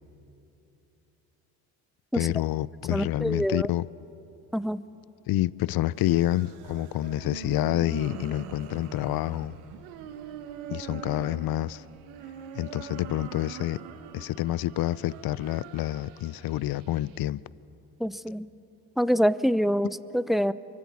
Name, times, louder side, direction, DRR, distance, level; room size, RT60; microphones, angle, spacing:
voice 1, 2.1-3.9 5.3-9.6 10.7-11.8 12.5-13.8 14.1-17.4, left 14 dB, 60° left, 0.6 m, -28 dB
voice 2, 2.9-3.7 4.5-4.8 18.0-18.5 19.0-20.5, equal, ahead, 0.8 m, -25 dB
sound 1, 5.9-17.2, right 8 dB, 85° right, 1.4 m, -43 dB
26.5 x 24.0 x 8.5 m
hypercardioid pair, 50°, 42 cm